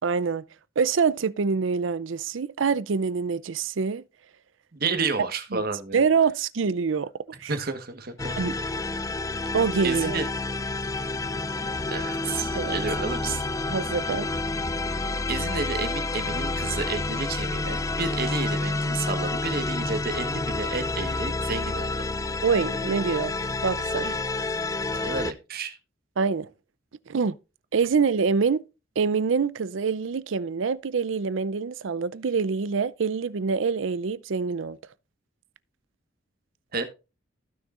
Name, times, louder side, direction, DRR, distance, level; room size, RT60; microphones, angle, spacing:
voice 1, 0.0-0.4 0.8-4.0 5.5-5.6 5.9-7.1 7.4-7.5 8.4-8.6 9.5-10.2 12.5-12.8 13.7-14.3 22.4-23.3 23.6-24.1 24.9-25.1 26.2-26.5 27.1-27.4 27.7-28.6 29.0-34.8, right 5 dB, 70° right, 0.5 m, -25 dB
voice 2, 4.7-6.0 7.5-8.3 9.8-10.3 11.9-13.4 15.3-22.1 24.0-24.2 25.0-25.8 36.7-36.8, right 4 dB, 50° right, 1.3 m, -31 dB
sound 1, 8.2-25.3, left 2 dB, 15° left, 0.3 m, -29 dB
15.0 x 6.3 x 2.4 m
head